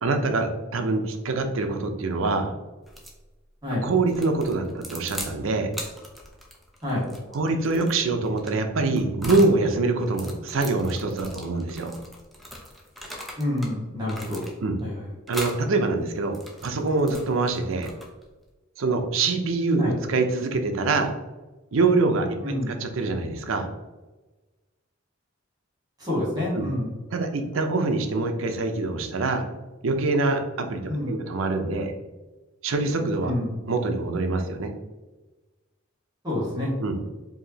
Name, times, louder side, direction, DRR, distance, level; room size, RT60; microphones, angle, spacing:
voice 1, 0.0-2.5 3.8-5.7 7.3-11.9 14.6-14.8 15.3-17.9 18.8-21.1 21.7-22.4 22.7-23.7 26.5-26.7 27.1-29.4 29.8-31.9 32.6-33.3 33.6-34.7 36.8-37.0, right 3 dB, 80° right, 5 dB, 0.6 m, -24 dB
sound 1, 2.9-3.2 4.1-5.4 5.7-9.6 10.0-13.7 14.0-14.8 15.3-15.6 16.2-18.3, equal, ahead, 0.6 m, -40 dB
voice 2, 13.4-14.4 14.8-14.9 19.8-19.9 22.4-22.7 26.0-26.9 30.9-31.2 33.2-33.6 36.2-36.7, left 1 dB, 20° right, -7 dB, 1.4 m, -27 dB
4.7 x 2.8 x 2.7 m, 1.2 s
head